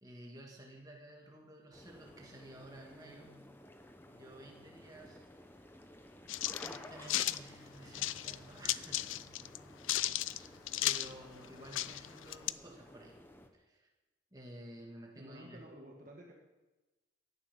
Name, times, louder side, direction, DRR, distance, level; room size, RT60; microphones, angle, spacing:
voice 1, 0.0-3.5 4.1-5.2 6.6-9.7 10.2-13.2 13.5-13.9 14.3-15.7, right 1 dB, 20° right, -1 dB, 2.2 m, -53 dB
sound 1, 1.7-13.5, left 1 dB, 10° left, 0.9 m, -54 dB
sound 2, 6.3-7.4 7.9-8.4 8.6-9.6 9.8-11.1 11.4-11.5 11.7-12.5, left 14 dB, 80° left, 0.4 m, -34 dB
voice 2, 15.1-16.3, right 1 dB, 45° right, -1 dB, 1.6 m, -52 dB
16.0 x 11.5 x 5.5 m, 1.1 s
head